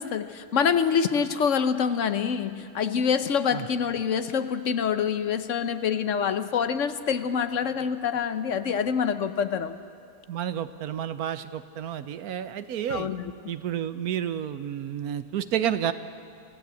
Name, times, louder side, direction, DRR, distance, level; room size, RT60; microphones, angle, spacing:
voice 1, 0.0-9.8 12.9-13.3, left 7 dB, 60° left, 11 dB, 1.1 m, -26 dB
voice 2, 10.3-13.1 13.5-15.9, right 10 dB, 85° right, 12 dB, 1.3 m, -30 dB
26.5 x 16.0 x 8.2 m, 2.4 s
omnidirectional pair, 1.5 m